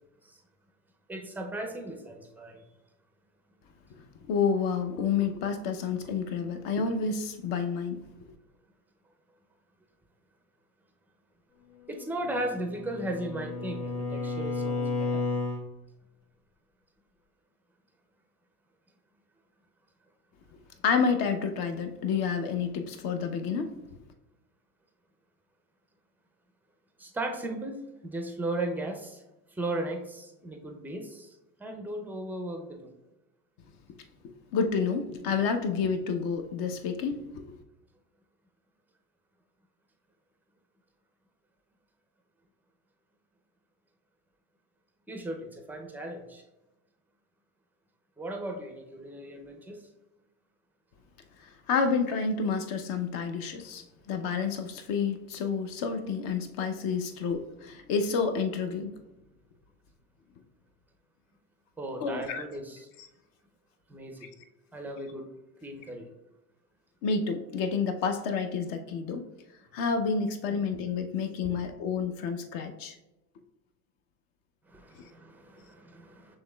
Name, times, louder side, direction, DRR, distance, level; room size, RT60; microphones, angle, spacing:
voice 1, 1.1-2.6 11.9-15.2 27.0-27.8 28.0-29.2 29.5-32.9 45.1-46.4 48.2-49.8 61.8-62.9 63.9-64.3 64.7-65.3 65.6-66.1 70.5-70.6 71.4-71.5 74.7-76.4, right 1 dB, 5° right, 0.4 m, -36 dB
voice 2, 4.3-8.0 20.5-23.8 34.5-37.6 51.4-59.0 62.0-62.4 67.0-69.3 69.7-73.0 75.0-75.1, left 5 dB, 50° left, 0.6 m, -29 dB
Bowed string instrument, 12.3-15.7, left 3 dB, 80° left, 1.4 m, -32 dB
6.3 x 3.1 x 2.2 m
hypercardioid pair, 85°, 48 cm